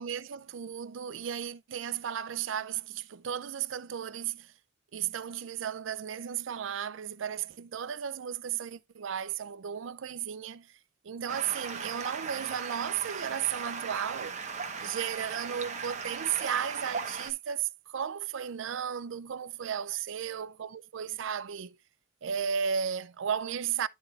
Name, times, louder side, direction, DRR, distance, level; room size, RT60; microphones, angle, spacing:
voice 1, 0.0-4.5 4.9-10.7 11.0-14.4 14.8-21.8 22.2-23.9, right 8 dB, 70° right, 0.4 m, -34 dB
Stream, 11.3-17.3, right 5 dB, 35° right, 1.0 m, -38 dB
11.5 x 4.6 x 2.4 m
head